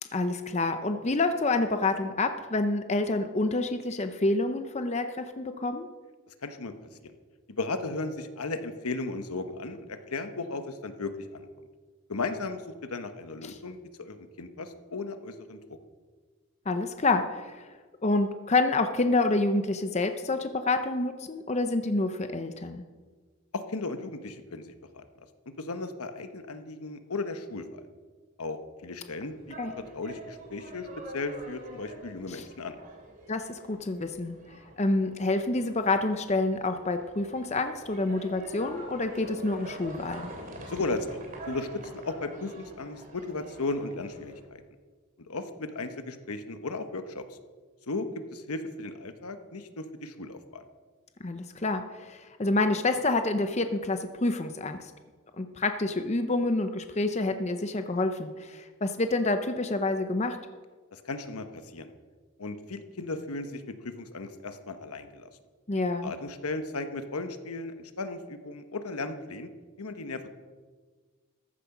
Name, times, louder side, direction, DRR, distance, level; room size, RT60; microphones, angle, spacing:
voice 1, 0.1-5.9 13.4-13.5 16.7-17.7 18.0-22.8 29.6-29.7 32.3-32.4 33.3-34.4 34.8-40.3 51.2-54.9 55.4-60.4 65.7-66.1, left 2 dB, 30° left, 8 dB, 0.6 m, -28 dB
voice 2, 6.4-6.7 7.0-7.1 7.6-11.5 12.1-15.8 23.5-25.3 25.6-27.8 28.4-29.6 29.9-30.9 31.1-32.8 40.7-44.6 45.3-47.4 47.9-50.6 60.9-61.9 62.4-65.3 66.0-69.5 69.8-70.3, left 3 dB, 85° left, 8 dB, 1.1 m, -36 dB
sound 1, 29.3-44.4, right 1 dB, 35° right, 2.8 m, -46 dB
14.5 x 10.5 x 6.0 m, 1.5 s
head